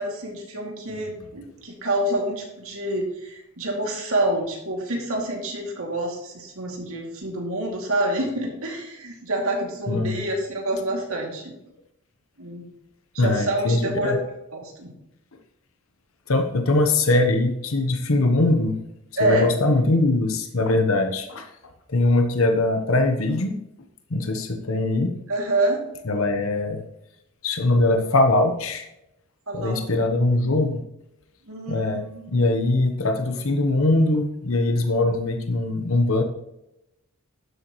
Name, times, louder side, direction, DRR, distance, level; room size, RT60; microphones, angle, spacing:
voice 1, 0.0-11.5 12.4-12.7 13.1-14.9 19.2-19.5 25.3-25.8 29.5-29.8 31.5-32.3, right 1 dB, 70° right, 0 dB, 2.6 m, -27 dB
voice 2, 13.2-14.2 16.3-18.8 19.2-21.5 21.9-23.6 24.1-25.2 26.1-26.8 27.4-28.9 29.5-30.8 31.7-32.0 32.3-36.2, left 2 dB, 70° left, 6 dB, 1.0 m, -21 dB
12.0 x 8.1 x 3.1 m, 0.87 s
head